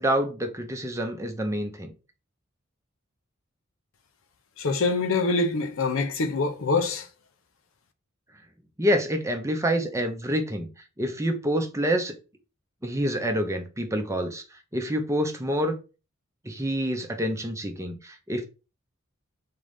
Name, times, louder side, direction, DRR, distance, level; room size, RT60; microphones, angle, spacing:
voice 1, 0.0-1.9 8.8-10.7 11.0-12.1 12.8-14.4 14.7-15.7 16.4-18.5, equal, 15° right, 0.7 m, -27 dB
voice 2, 4.6-7.1, left 3 dB, 70° left, 0.7 m, -25 dB
3.9 x 3.8 x 3.5 m
head